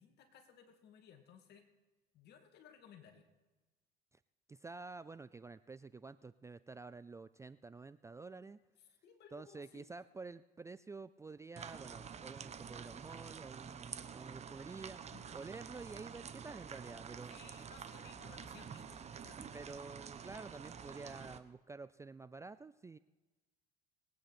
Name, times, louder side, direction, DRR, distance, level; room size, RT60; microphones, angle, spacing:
voice 1, 0.0-1.7 2.1-3.3 9.0-9.8 15.1-15.3 17.3-19.6, left 7 dB, 55° left, 4 dB, 2.4 m, -60 dB
voice 2, 4.5-8.6 9.3-15.0 15.3-17.4 19.5-23.0, right 4 dB, 15° right, 15 dB, 0.4 m, -50 dB
sound 1, 11.6-21.4, right 7 dB, 35° right, 1.0 m, -49 dB
21.0 x 9.4 x 4.3 m, 1.2 s
hypercardioid pair, 80°, 20 cm